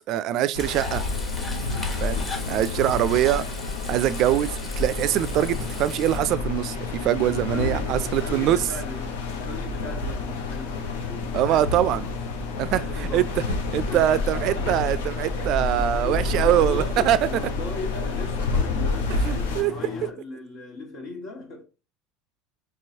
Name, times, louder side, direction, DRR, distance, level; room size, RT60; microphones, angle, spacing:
voice 1, 0.1-1.0 2.0-3.4 3.9-8.6 11.3-12.1 12.6-17.2 19.2-19.7, right 12 dB, 60° right, 0.3 m, -23 dB
sound 1, 0.5-19.6, left 3 dB, 90° left, 0.7 m, -29 dB
Frying (food), 0.6-6.2, left 2 dB, 20° left, 1.1 m, -39 dB
sound 2, 4.4-20.1, left 8 dB, 50° left, 0.4 m, -37 dB
voice 2, 7.2-12.1 12.7-13.4 13.7-15.1 15.4-21.6, left 2 dB, 75° left, 1.8 m, -38 dB
4.5 x 2.9 x 2.7 m
hypercardioid pair, 85°, 0 cm